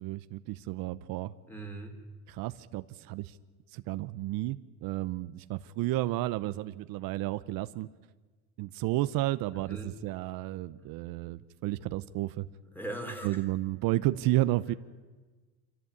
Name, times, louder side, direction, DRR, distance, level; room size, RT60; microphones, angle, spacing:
voice 1, 0.0-1.3 2.3-3.4 3.7-7.9 8.6-12.5 13.2-14.7, right 16 dB, 75° right, 13 dB, 0.8 m, -32 dB
voice 2, 1.5-2.0 9.5-9.9 12.7-13.4, right 2 dB, 5° left, 4 dB, 3.4 m, -39 dB
27.0 x 15.0 x 8.7 m, 1.3 s
cardioid pair, 140°, 35 cm